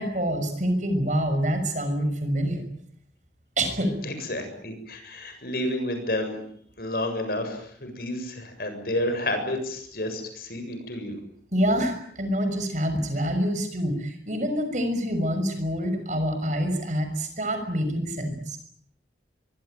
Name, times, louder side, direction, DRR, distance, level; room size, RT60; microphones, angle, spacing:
voice 1, 0.0-2.6 3.6-4.0 11.5-18.6, equal, 45° right, 8 dB, 6.1 m, -26 dB
voice 2, 4.0-6.4 6.8-11.2, left 1 dB, 55° left, 7 dB, 7.6 m, -30 dB
25.0 x 23.5 x 9.1 m, 0.65 s
head